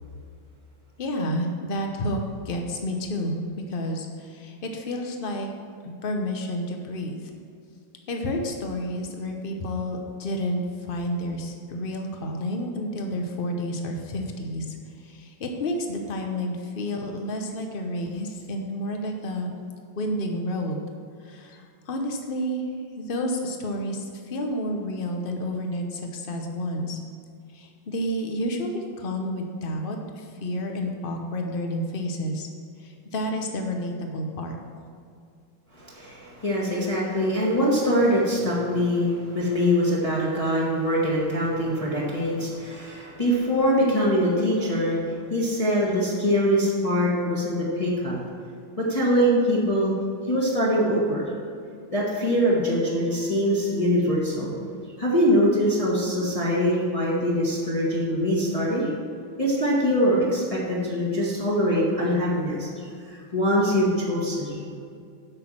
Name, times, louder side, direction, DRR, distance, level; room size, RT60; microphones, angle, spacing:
voice 1, 1.0-2.2 2.4-3.4 3.7-5.5 5.8-7.2 8.1-14.6 15.1-19.5 20.0-20.8 21.3-21.6 21.9-22.7 23.0-27.0 27.5-32.5 32.8-34.5, equal, 75° left, 3 dB, 0.5 m, -30 dB
voice 2, 35.7-48.2 48.9-49.9 50.3-51.2 51.9-54.5 55.0-58.9 59.4-62.7 63.0-64.6, equal, 20° left, -6 dB, 1.2 m, -23 dB
8.0 x 6.2 x 7.4 m, 2.3 s
omnidirectional pair, 2.3 m